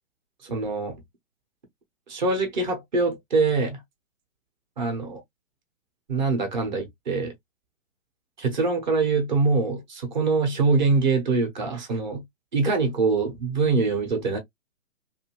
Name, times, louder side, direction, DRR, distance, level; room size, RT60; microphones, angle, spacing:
voice 1, 0.4-1.0 2.1-3.8 4.8-5.2 6.1-7.3 8.4-12.2 12.5-14.4, right 4 dB, 35° right, 0.9 m, -24 dB
2.6 x 2.6 x 2.8 m
figure-of-eight pair, 145°, 41 cm